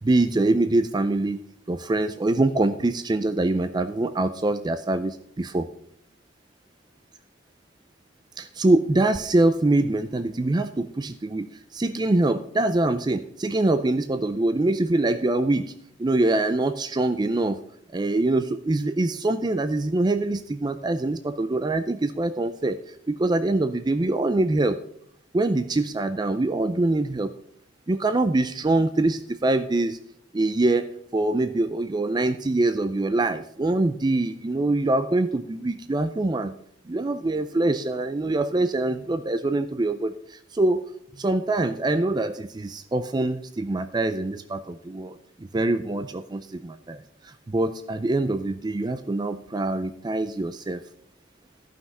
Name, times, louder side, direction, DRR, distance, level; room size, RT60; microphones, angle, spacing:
voice 1, 0.0-5.7 8.4-11.5 11.7-15.7 16.0-17.6 17.9-24.8 25.3-27.3 27.9-30.0 30.3-30.9 31.1-36.5 36.9-40.8 41.2-50.8, right 2 dB, 20° right, 10 dB, 0.4 m, -24 dB
14.0 x 5.9 x 5.5 m, 0.71 s
head